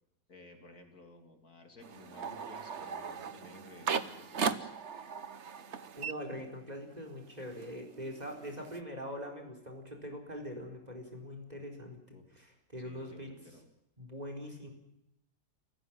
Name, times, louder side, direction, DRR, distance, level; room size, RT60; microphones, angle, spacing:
voice 1, 0.3-4.7 12.1-12.2 12.8-13.7 14.6-14.7, left 3 dB, 55° left, 4 dB, 3.3 m, -55 dB
sound 1, 1.8-6.9 7.2-8.8, right 6 dB, 45° right, 1.2 m, -38 dB
voice 2, 6.0-13.3 14.0-14.7, equal, 20° right, 4 dB, 4.4 m, -43 dB
29.0 x 15.0 x 7.5 m, 0.82 s
omnidirectional pair, 1.9 m